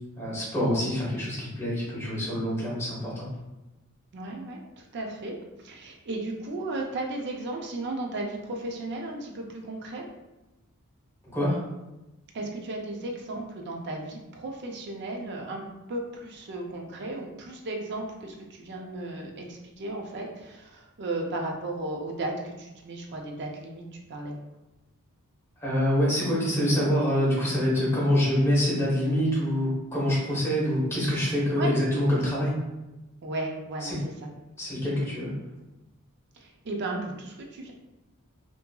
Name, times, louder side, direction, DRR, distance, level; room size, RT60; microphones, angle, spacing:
voice 1, 0.2-3.3 11.3-11.6 25.6-32.5 33.8-33.9 34.6-35.3, equal, 10° left, -7 dB, 1.0 m, -25 dB
voice 2, 4.1-10.1 12.3-23.8 24.1-24.3 31.6-31.7 33.2-34.0 36.3-37.7, right 2 dB, 50° right, 1 dB, 0.5 m, -35 dB
2.7 x 2.5 x 2.3 m, 1.0 s
head